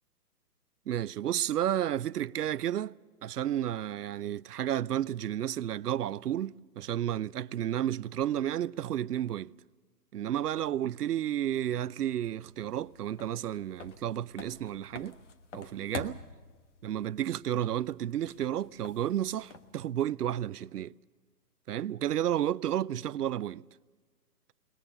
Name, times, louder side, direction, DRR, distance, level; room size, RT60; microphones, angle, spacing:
voice 1, 0.9-2.9 3.2-9.5 10.1-15.2 15.5-16.2 16.8-20.9 21.7-23.6, right 11 dB, 65° right, 0.6 m, -32 dB
sound 1, 12.2-19.9, left 5 dB, 45° left, 1.4 m, -48 dB
21.5 x 20.0 x 6.7 m
hypercardioid pair, 160°, 50 cm